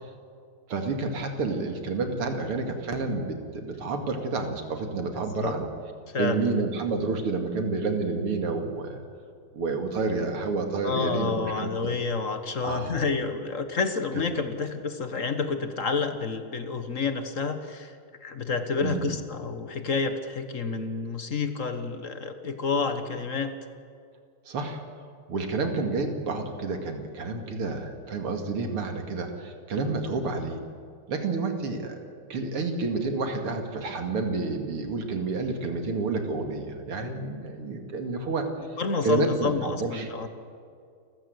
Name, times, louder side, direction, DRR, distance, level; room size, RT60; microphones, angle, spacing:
voice 1, 0.7-5.7 6.2-9.0 9.5-11.9 12.6-13.0 18.8-19.1 24.5-24.8 25.3-30.6 31.1-32.0 32.3-38.5 39.0-40.1, right 3 dB, 85° right, 5 dB, 3.1 m, -29 dB
voice 2, 5.2-5.5 6.1-6.4 10.8-18.0 18.2-23.5 38.8-40.3, left 4 dB, 40° left, 8 dB, 1.4 m, -29 dB
29.0 x 14.5 x 7.9 m, 2.4 s
omnidirectional pair, 2.4 m